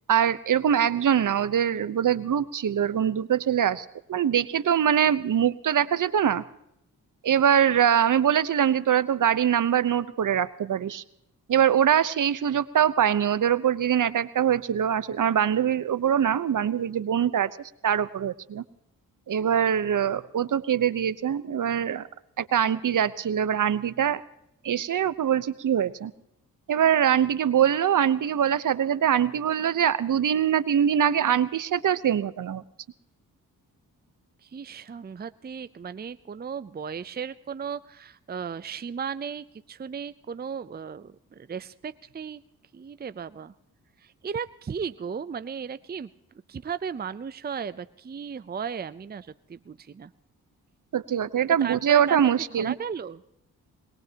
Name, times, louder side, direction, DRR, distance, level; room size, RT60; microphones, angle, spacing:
voice 1, 0.1-6.4 7.2-11.0 11.5-17.6 17.8-18.6 19.3-22.1 22.4-24.2 24.6-26.1 26.7-32.6 50.9-52.7, right 9 dB, 60° right, 14 dB, 1.0 m, -23 dB
voice 2, 34.4-42.4 42.7-43.5 44.0-46.1 46.5-50.1 51.6-53.2, right 6 dB, 25° right, 13 dB, 0.6 m, -36 dB
22.5 x 20.5 x 2.9 m, 0.78 s
cardioid pair, 65°, 36 cm